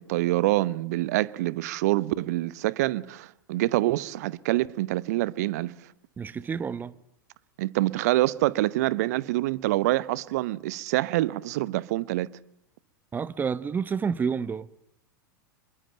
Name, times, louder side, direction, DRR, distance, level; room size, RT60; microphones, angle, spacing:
voice 1, 0.0-5.7 7.6-12.3, right 17 dB, 50° right, 1.0 m, -26 dB
voice 2, 6.2-6.9 13.1-14.7, right 6 dB, 15° right, 1.0 m, -29 dB
26.0 x 23.0 x 9.1 m
figure-of-eight pair, 90°, 11 cm